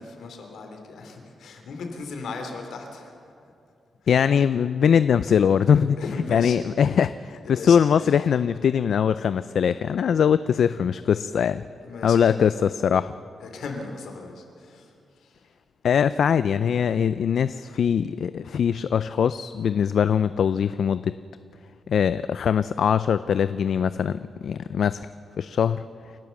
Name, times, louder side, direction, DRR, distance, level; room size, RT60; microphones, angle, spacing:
voice 1, 0.0-3.5 4.0-4.2 4.8-4.9 5.9-6.6 7.4-8.3 11.8-12.5 13.4-15.6, left 4 dB, 90° left, 4 dB, 3.2 m, -37 dB
voice 2, 4.1-6.0 6.3-11.6 12.0-12.5 12.8-13.1 15.8-21.1 21.9-25.1 25.4-25.8, left 7 dB, 70° left, 13 dB, 0.4 m, -22 dB
29.0 x 12.5 x 7.2 m, 2.5 s
cardioid pair, 105°, 0 cm